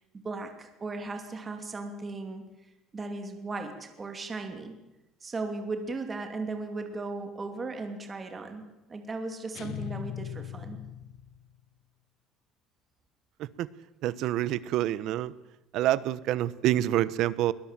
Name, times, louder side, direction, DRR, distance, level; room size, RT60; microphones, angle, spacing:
voice 1, 0.2-2.4 2.9-4.8 5.2-8.6 8.9-10.8, right 3 dB, 20° right, 5 dB, 2.7 m, -36 dB
sound 1, 9.5-11.6, left 12 dB, 55° left, 1.1 m, -39 dB
voice 2, 14.0-15.3 15.7-17.5, right 13 dB, 60° right, 18 dB, 1.0 m, -27 dB
22.0 x 20.0 x 7.6 m, 1.0 s
cardioid pair, 160°, 0 cm